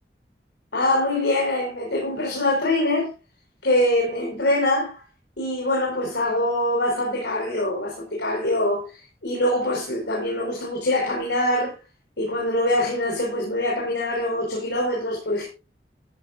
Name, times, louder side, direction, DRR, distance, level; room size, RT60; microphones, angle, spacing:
voice 1, 0.7-3.1 3.6-5.0 5.4-11.7 12.2-15.5, left 1 dB, 85° left, 5.0 m, -24 dB
13.5 x 13.0 x 2.6 m
head